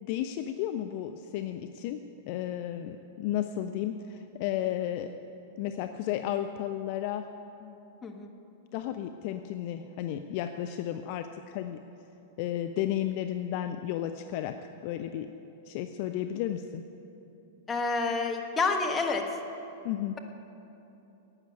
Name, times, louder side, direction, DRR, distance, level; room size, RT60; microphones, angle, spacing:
voice 1, 0.0-5.1 5.6-7.3 7.6-7.8 8.7-11.8 12.4-15.3 15.7-16.8 19.8-20.2, left 11 dB, 50° left, 8 dB, 0.5 m, -33 dB
voice 2, 8.0-8.3 17.7-19.2, left 4 dB, 20° left, 3 dB, 1.4 m, -28 dB
12.0 x 8.9 x 8.9 m, 2.9 s
figure-of-eight pair, 100°, 0 cm